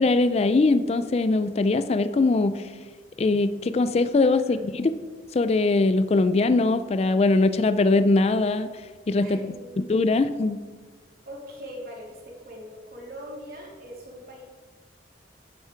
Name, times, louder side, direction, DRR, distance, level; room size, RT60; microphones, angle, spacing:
voice 1, 0.0-2.7 3.2-4.9 5.3-10.6, left 3 dB, 35° left, 12 dB, 0.3 m, -22 dB
voice 2, 9.2-9.8 11.2-14.4, equal, 55° right, -2 dB, 2.9 m, -41 dB
10.0 x 9.4 x 4.5 m, 1.5 s
head